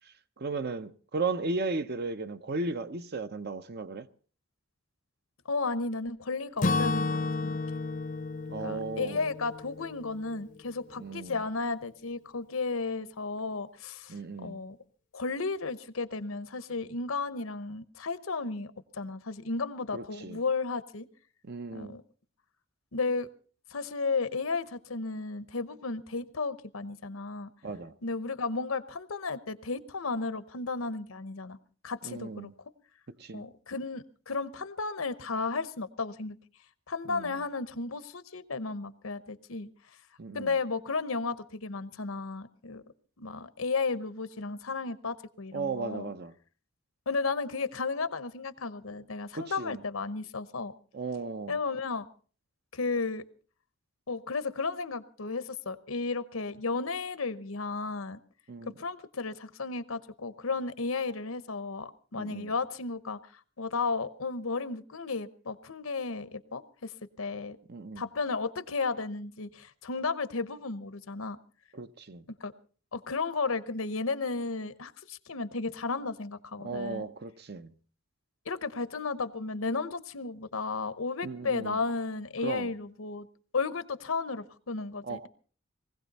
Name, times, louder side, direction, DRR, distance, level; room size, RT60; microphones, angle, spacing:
voice 1, 0.4-4.1 8.5-9.3 11.0-11.4 14.1-14.6 19.9-20.4 21.4-22.0 27.6-28.0 32.0-32.5 33.2-33.5 37.0-37.4 40.2-40.5 45.5-46.3 49.3-49.8 50.9-51.6 58.5-58.7 62.1-62.5 67.7-68.0 71.7-72.2 76.6-77.7 81.2-81.8 82.4-82.7 85.0-85.3, right 3 dB, 50° right, 0.7 m, -36 dB
voice 2, 5.5-7.6 8.6-14.8 15.1-21.1 21.7-22.0 22.9-23.3 23.7-27.5 28.0-31.6 31.8-32.5 33.3-36.4 36.9-39.7 40.3-42.8 43.2-46.1 47.1-50.7 51.5-52.1 52.7-53.2 54.1-58.2 58.6-63.2 63.6-66.9 67.2-67.6 68.0-71.4 72.4-72.5 72.9-77.1 78.5-83.3 83.5-85.3, left 4 dB, 80° left, 1.0 m, -33 dB
Acoustic guitar / Strum, 6.6-10.6, left 3 dB, 40° left, 0.7 m, -32 dB
20.0 x 16.0 x 4.1 m
head